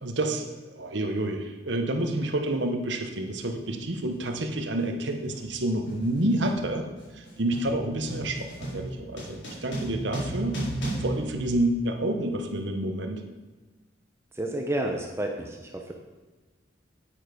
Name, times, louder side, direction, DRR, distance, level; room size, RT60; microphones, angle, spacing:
voice 1, 0.0-6.8 7.1-10.6 11.0-13.2, right 1 dB, 70° right, 4 dB, 1.0 m, -29 dB
sound 1, 2.2-2.3 3.1-3.4 3.7-12.2, right 1 dB, 70° left, 3.9 m, -36 dB
voice 2, 14.3-15.9, right 1 dB, 15° right, 2 dB, 0.8 m, -30 dB
9.1 x 8.9 x 5.1 m, 1.3 s
head